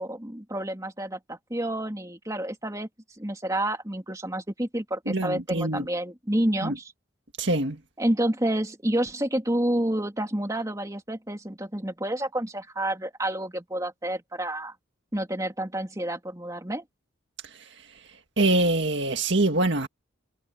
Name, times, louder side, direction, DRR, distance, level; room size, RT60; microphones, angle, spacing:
voice 1, 0.0-2.9 3.2-6.9 8.0-14.7 15.1-16.8, right 1 dB, 15° right, 2.9 m, -29 dB
voice 2, 5.1-5.9 6.6-6.8 7.4-7.8 18.4-19.9, right 2 dB, 60° right, 1.9 m, -24 dB
head